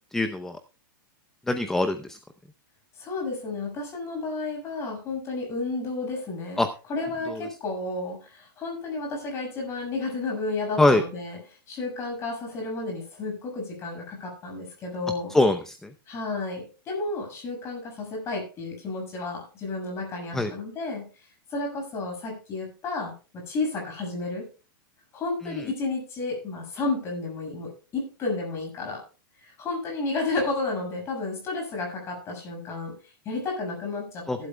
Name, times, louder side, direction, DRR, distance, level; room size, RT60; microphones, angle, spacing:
voice 1, 0.1-0.5 1.5-2.2 6.6-6.7 10.8-11.0 15.3-15.8 20.3-20.5 34.3-34.4, left 2 dB, 5° left, 8 dB, 0.7 m, -22 dB
voice 2, 3.0-6.6 6.9-11.4 11.7-15.3 16.1-24.5 25.1-29.0 29.3-34.5, left 3 dB, 25° left, 1 dB, 6.8 m, -32 dB
17.5 x 12.0 x 2.3 m, 0.34 s
supercardioid pair, 160°, 12 cm